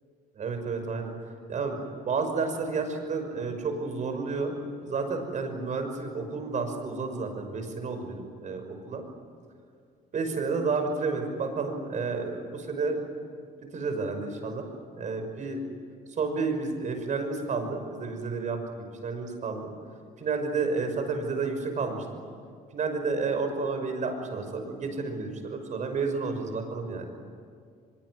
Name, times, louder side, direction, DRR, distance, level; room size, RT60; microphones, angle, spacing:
voice 1, 0.4-1.1 1.5-1.8 2.1-4.6 4.9-9.0 10.1-13.0 13.7-14.7 15.0-15.6 16.2-19.7 20.2-22.2 22.7-27.2, right 4 dB, 45° right, 6 dB, 5.9 m, -31 dB
24.0 x 22.5 x 9.6 m, 2.1 s
cardioid pair, 110°, 17 cm